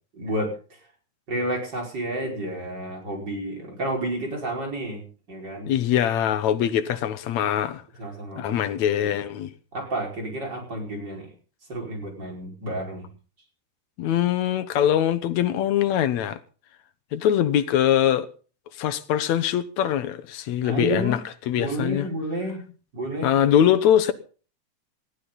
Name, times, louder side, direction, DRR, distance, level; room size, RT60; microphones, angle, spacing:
voice 1, 0.1-0.5 1.3-5.0 5.3-5.7 8.0-9.1 9.7-11.3 11.7-13.1 20.6-21.2 21.6-22.6 22.9-23.3, right 1 dB, 35° right, 5.8 m, -30 dB
voice 2, 5.7-7.8 8.4-9.5 14.0-16.4 17.1-18.3 18.8-21.2 21.5-22.1 23.2-24.1, left 10 dB, 75° left, 2.3 m, -22 dB
19.5 x 14.5 x 4.0 m
omnidirectional pair, 3.3 m